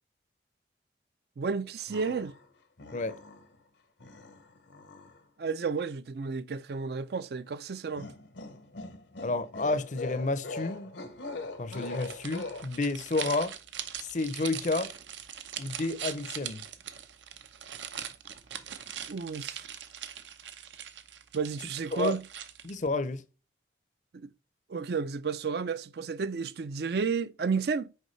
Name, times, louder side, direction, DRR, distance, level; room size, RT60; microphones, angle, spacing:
voice 1, 1.4-2.3 5.4-8.1 19.1-19.7 21.3-22.2 24.7-27.9, right 5 dB, 60° right, 0.4 m, -32 dB
sound 1, 1.9-2.5 2.8-3.6 4.0-5.2 8.0-12.6, left 3 dB, 75° left, 0.9 m, -42 dB
voice 2, 9.2-10.9 11.6-13.5 14.0-14.9 15.6-16.6 21.9-22.2 22.6-23.2, left 3 dB, 40° left, 0.6 m, -30 dB
sound 2, 11.7-22.9, right 9 dB, 85° right, 0.7 m, -41 dB
6.5 x 4.6 x 3.1 m
head